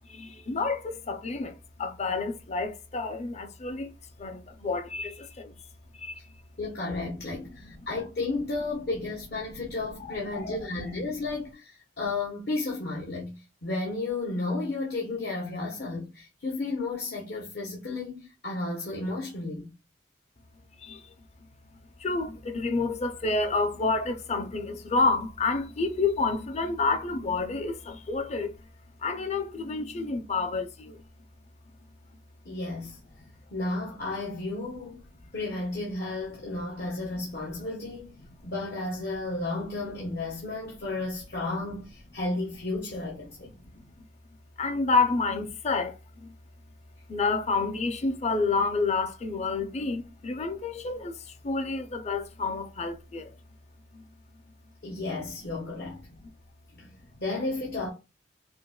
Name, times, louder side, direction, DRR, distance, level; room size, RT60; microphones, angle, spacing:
voice 1, 0.0-5.5 5.9-6.2 7.6-7.9 10.0-10.9 20.8-21.0 22.0-28.5 29.0-31.0 35.2-35.5 43.6-44.1 44.6-46.3 47.1-53.3 53.9-54.0 56.1-56.3, left 3 dB, 40° left, 0.5 m, -29 dB
voice 2, 6.6-19.6 32.4-33.0 33.5-35.1 35.3-38.1 38.4-43.5 54.8-56.0 56.7-57.9, left 2 dB, 65° left, 1.0 m, -33 dB
5.1 x 2.1 x 2.3 m
head